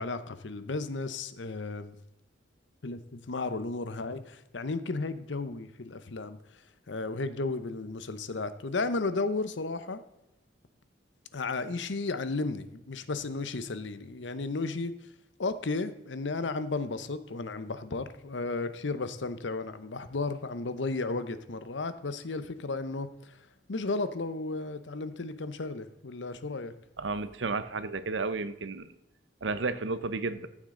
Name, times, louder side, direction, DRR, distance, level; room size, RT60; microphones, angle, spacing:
voice 1, 0.0-2.0 2.8-6.4 6.9-10.0 11.3-14.9 15.4-26.7, left 3 dB, 75° left, 12 dB, 0.8 m, -34 dB
voice 2, 27.0-28.9 29.4-30.5, right 3 dB, 80° right, 13 dB, 0.8 m, -32 dB
14.5 x 7.4 x 3.8 m, 0.90 s
head